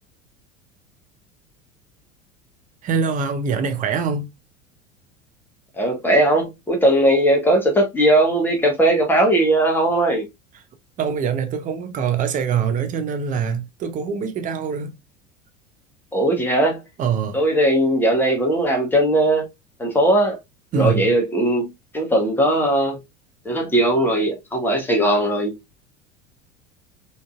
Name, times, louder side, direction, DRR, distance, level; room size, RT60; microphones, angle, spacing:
voice 1, 2.8-4.3 11.0-14.9 17.0-17.4 20.7-21.2, right 6 dB, 20° right, 0.5 m, -24 dB
voice 2, 5.8-10.3 16.1-16.8 17.3-19.5 19.8-20.4 20.7-23.0 23.4-25.5, right 1 dB, 5° left, 0.9 m, -19 dB
3.6 x 2.6 x 2.3 m
figure-of-eight pair, 75°, 36 cm